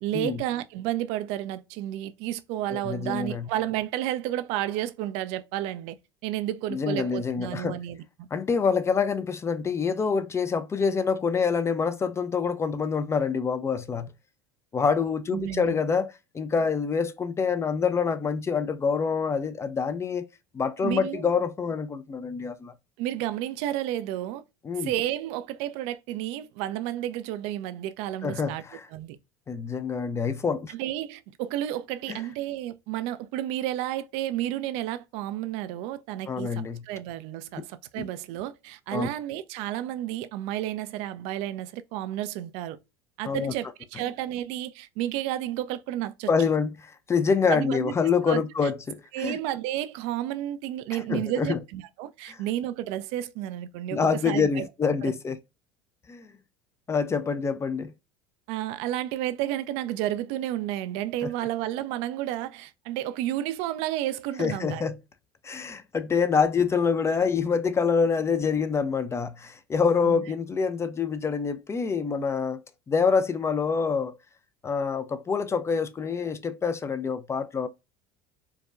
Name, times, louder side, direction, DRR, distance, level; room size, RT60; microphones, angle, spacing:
voice 1, 0.0-6.0 6.2-8.3 15.3-15.7 20.8-21.2 23.0-24.4 24.8-28.6 28.9-29.2 30.7-42.8 43.2-46.3 47.5-47.9 48.3-48.7 49.1-54.7 55.0-55.1 58.5-64.8 70.0-70.2, right 13 dB, 60° right, 0.4 m, -31 dB
voice 2, 2.7-3.5 6.7-7.8 8.3-14.1 14.7-20.3 20.5-22.7 24.6-24.9 28.2-28.9 29.5-30.7 32.1-32.2 36.3-36.8 38.0-38.1 38.9-39.1 43.3-43.5 46.3-46.7 47.1-49.4 50.9-51.6 52.3-52.4 53.9-55.4 56.1-56.3 56.9-57.9 61.2-61.3 64.4-65.0 65.4-72.6 72.9-74.2 74.6-77.7, left 5 dB, 25° left, 0.4 m, -26 dB
4.6 x 2.2 x 2.4 m
hypercardioid pair, 75°, 12 cm